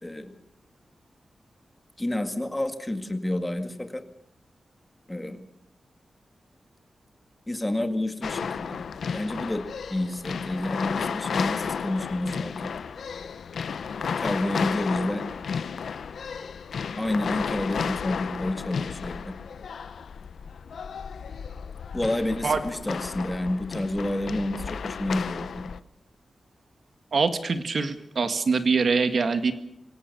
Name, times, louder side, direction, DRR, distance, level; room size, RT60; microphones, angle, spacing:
voice 1, 0.0-0.4 2.0-4.0 5.1-5.4 7.5-8.8 9.1-12.7 14.2-15.2 17.0-19.3 21.9-25.7, left 1 dB, 15° left, 7 dB, 2.0 m, -29 dB
sound 1, 8.2-25.8, left 6 dB, 85° left, 0.8 m, -33 dB
voice 2, 27.1-29.5, right 4 dB, 55° right, 9 dB, 1.9 m, -24 dB
26.0 x 17.5 x 6.8 m, 0.81 s
wide cardioid pair, 135°, 0 cm